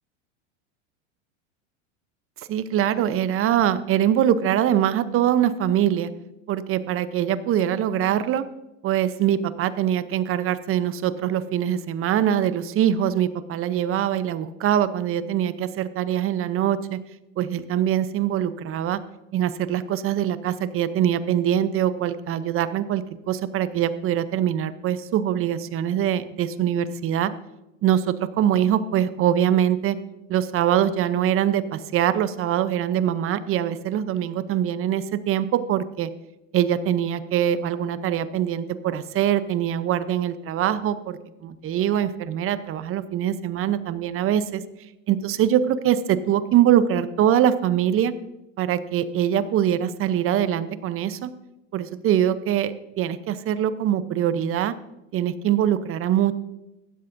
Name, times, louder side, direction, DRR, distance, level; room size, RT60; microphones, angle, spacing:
voice 1, 2.5-6.1 6.5-8.4 8.8-17.0 17.4-19.0 19.3-27.3 27.8-30.0 30.3-36.1 36.5-44.6 45.1-48.1 48.6-51.3 51.7-54.7 55.1-56.3, right 10 dB, 35° right, 14 dB, 0.7 m, -23 dB
15.5 x 11.5 x 2.6 m, 0.95 s
hypercardioid pair, 105°, 39 cm